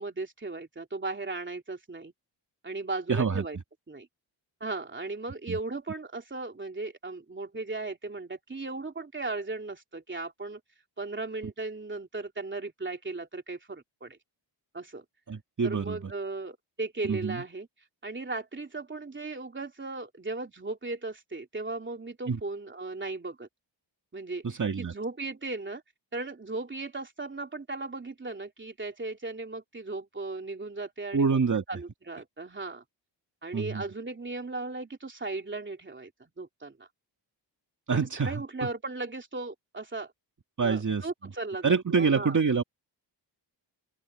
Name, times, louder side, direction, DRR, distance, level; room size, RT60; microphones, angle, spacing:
voice 1, 0.0-2.1 2.6-3.6 3.9-4.1 4.6-10.6 11.0-14.2 14.7-15.0 15.6-17.7 18.0-23.5 24.1-24.4 24.8-25.8 26.1-31.4 31.7-32.8 33.4-36.9 37.9-40.1 40.6-42.4, right 3 dB, 25° right, 3.3 m, -37 dB
voice 2, 3.1-3.4 5.5-5.6 15.3-16.1 17.0-17.4 22.3-22.4 24.4-24.9 31.1-31.6 33.5-33.8 37.9-38.7 40.6-41.1 41.6-42.6, right 5 dB, 40° right, 2.3 m, -26 dB
open air
wide cardioid pair, 150°, 45 cm